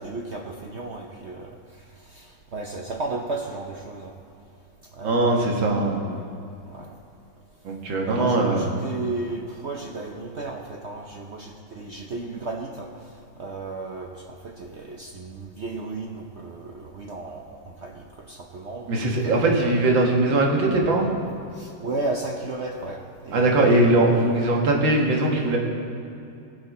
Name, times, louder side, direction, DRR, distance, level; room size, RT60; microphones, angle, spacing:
voice 1, 0.0-1.5 2.1-4.1 4.9-6.2 6.7-6.9 8.1-12.9 13.4-14.1 14.4-19.0 19.2-19.7 21.5-24.4, right 3 dB, 60° right, 1 dB, 0.7 m, -34 dB
voice 2, 5.0-6.0 7.6-8.7 18.9-21.1 23.3-25.6, right 2 dB, 85° right, 0 dB, 2.2 m, -20 dB
16.5 x 9.7 x 4.1 m, 2.7 s
omnidirectional pair, 2.0 m